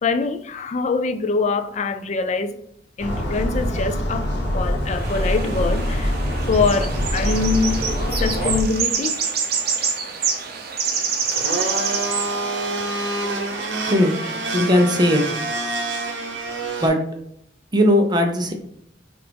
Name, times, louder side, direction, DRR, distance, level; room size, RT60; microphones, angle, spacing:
voice 1, 0.0-2.6 3.0-4.3 4.5-6.1 6.5-7.8 8.2-9.2, left 4 dB, 40° left, 0.4 m, -23 dB
sound 1, 3.0-8.6, equal, 80° left, 1.3 m, -24 dB
sound 2, 4.9-15.4, right 6 dB, 55° right, 0.8 m, -28 dB
Domestic sounds home sounds, 11.3-16.9, right 2 dB, 80° right, 1.0 m, -27 dB
voice 2, 14.5-15.2 16.8-17.0 17.7-18.5, left 1 dB, 25° right, 0.7 m, -17 dB
5.9 x 2.5 x 3.4 m
head